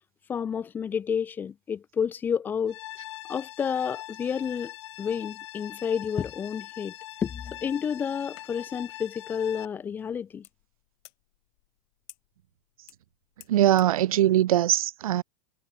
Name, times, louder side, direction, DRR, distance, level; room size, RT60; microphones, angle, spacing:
voice 1, 0.3-2.8 3.3-4.7 5.0-6.9 7.2-10.4, left 7 dB, 10° left, 0.9 m, -30 dB
sound 1, 2.7-9.7, left 15 dB, 55° left, 3.0 m, -42 dB
sound 2, 8.2-14.0, left 25 dB, 40° left, 5.7 m, -57 dB
voice 2, 13.5-15.2, right 12 dB, 80° right, 0.9 m, -21 dB
supercardioid pair, 180°, 18 cm